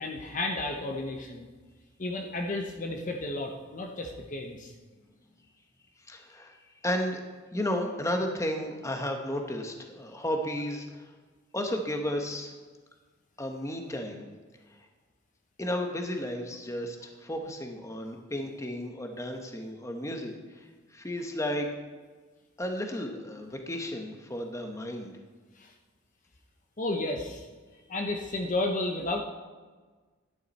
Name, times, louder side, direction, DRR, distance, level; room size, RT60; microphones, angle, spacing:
voice 1, 0.0-1.5 2.0-4.7 25.6-25.7 26.8-27.5 27.9-29.2, left 2 dB, 40° left, 2 dB, 0.9 m, -32 dB
voice 2, 6.1-7.2 7.5-11.1 11.5-12.5 13.4-14.2 15.6-21.7 22.6-25.1, left 1 dB, 15° left, 4 dB, 1.1 m, -33 dB
12.0 x 9.8 x 4.2 m, 1.4 s
head